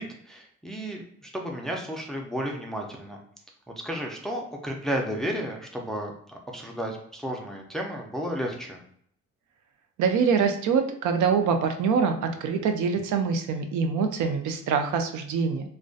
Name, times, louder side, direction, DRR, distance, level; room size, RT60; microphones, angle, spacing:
voice 1, 0.0-3.2 3.7-8.8, equal, ahead, 0 dB, 0.4 m, -33 dB
voice 2, 10.0-15.7, right 6 dB, 75° right, 6 dB, 0.5 m, -24 dB
2.5 x 2.1 x 2.3 m, 0.66 s
cardioid pair, 90°, 30 cm